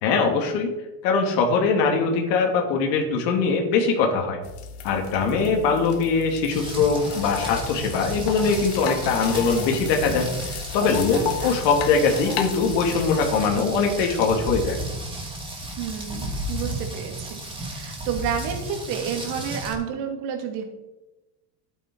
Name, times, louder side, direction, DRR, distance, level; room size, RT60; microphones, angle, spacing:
voice 1, 0.0-0.7 1.0-4.4 4.8-14.8, left 4 dB, 80° left, 2 dB, 2.6 m, -22 dB
sound 1, 4.4-13.4, left 8 dB, 55° left, 1.7 m, -34 dB
Rain, 6.5-19.7, right 1 dB, 10° right, 2.7 m, -33 dB
voice 2, 11.0-11.6 15.8-17.4 17.7-20.6, right 7 dB, 75° right, 4 dB, 2.6 m, -30 dB
12.0 x 9.2 x 4.7 m, 1.0 s
cardioid pair, 140°, 49 cm